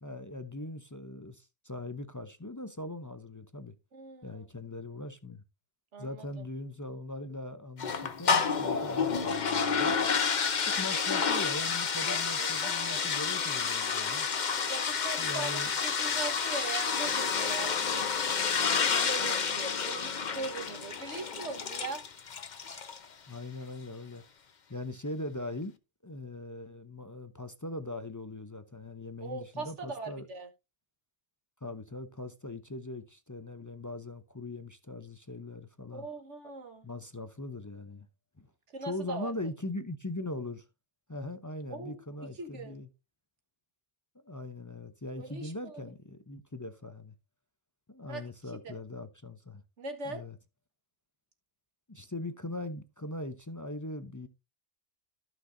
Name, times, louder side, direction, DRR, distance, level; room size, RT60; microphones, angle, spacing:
voice 1, 0.0-3.7 4.2-5.4 6.0-10.0 10.7-14.3 15.2-15.7 23.3-24.2 24.7-25.7 26.0-30.3 31.6-36.1 36.8-38.1 38.4-38.5 38.8-40.7 41.1-42.9 44.2-47.1 47.9-49.6 50.1-50.3 51.9-54.3, left 2 dB, 20° left, 0.5 m, -40 dB
voice 2, 3.9-4.5 5.9-6.5 10.7-11.0 12.1-13.0 13.3-13.5 14.7-18.1 18.9-22.0 22.6-23.0 29.2-30.5 35.9-36.9 38.7-39.3 41.7-42.0 42.4-42.8 45.2-45.8 48.1-48.7 49.8-50.3, right 3 dB, 70° right, 1.8 m, -41 dB
sound 1, 7.8-23.0, left 6 dB, 40° left, 0.8 m, -30 dB
14.5 x 6.0 x 2.6 m
omnidirectional pair, 1.3 m